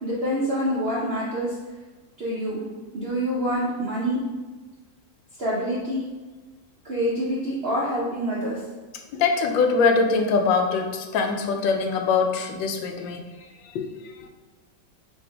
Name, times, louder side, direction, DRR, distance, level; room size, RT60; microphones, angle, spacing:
voice 1, 0.0-1.5 2.2-2.6 2.9-4.2 5.4-6.0 6.8-8.6, equal, 65° right, -6 dB, 0.6 m, -26 dB
voice 2, 9.1-13.5 13.7-14.3, left 4 dB, 85° left, 4 dB, 1.3 m, -23 dB
5.9 x 2.6 x 3.3 m, 1.3 s
omnidirectional pair, 2.0 m